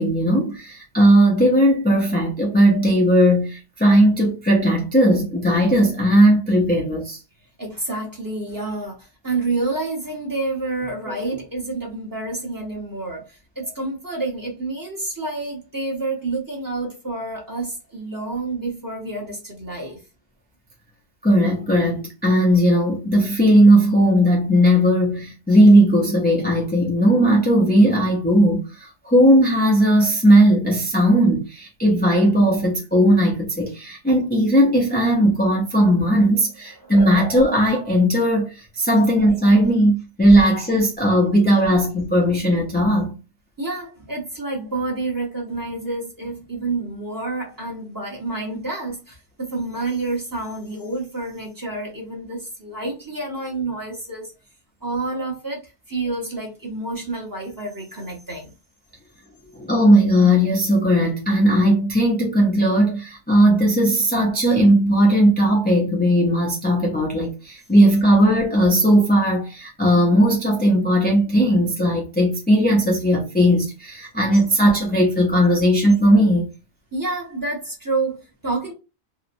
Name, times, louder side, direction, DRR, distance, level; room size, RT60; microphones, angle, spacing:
voice 1, 0.0-7.2 11.1-11.2 21.2-43.1 59.5-76.5, equal, 15° left, 0.3 m, -17 dB
voice 2, 7.6-20.0 36.8-36.9 43.6-54.3 54.8-55.6 55.9-58.5 76.9-78.7, right 3 dB, 20° right, 0.8 m, -28 dB
2.8 x 2.1 x 2.5 m
omnidirectional pair, 1.1 m